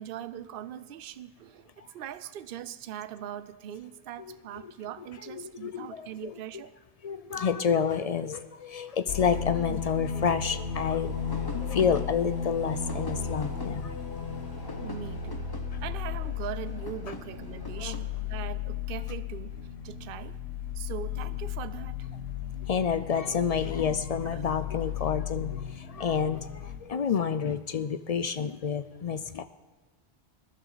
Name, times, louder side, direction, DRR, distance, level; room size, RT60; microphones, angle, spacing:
voice 1, 0.0-6.7 14.8-15.5 15.8-19.5 19.8-20.3 20.7-22.1 24.3-24.4, right 10 dB, 65° right, 14 dB, 0.8 m, -41 dB
voice 2, 5.3-6.3 7.0-14.0 17.8-17.9 22.6-29.4, left 7 dB, 50° left, 12 dB, 0.4 m, -29 dB
sound 1, 9.1-26.8, left 7 dB, 80° left, 1.4 m, -35 dB
sound 2, 10.7-18.4, left 2 dB, 25° left, 0.9 m, -45 dB
20.0 x 11.0 x 4.0 m, 1.4 s
omnidirectional pair, 1.1 m